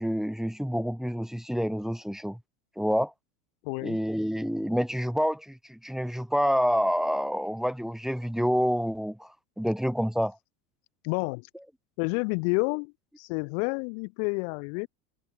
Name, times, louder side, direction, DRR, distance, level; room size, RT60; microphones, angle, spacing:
voice 1, 0.0-2.4 2.8-3.1 3.8-10.4, equal, ahead, 4.1 m, -28 dB
voice 2, 3.6-4.0 11.0-11.5 12.0-14.9, left 40 dB or more, 65° left, 5.9 m, -29 dB
supercardioid pair, 125°, 42 cm